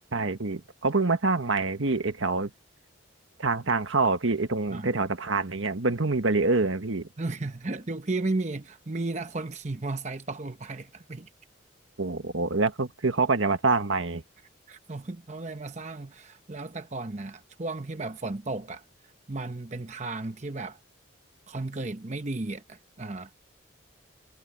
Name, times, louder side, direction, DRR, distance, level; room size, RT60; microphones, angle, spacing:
voice 1, 0.1-2.5 3.4-7.1 12.0-14.2, right 3 dB, 75° right, 1.5 m, -26 dB
voice 2, 7.2-11.3 14.7-18.8 19.3-20.8 21.5-23.3, right 2 dB, 35° right, 0.9 m, -34 dB
head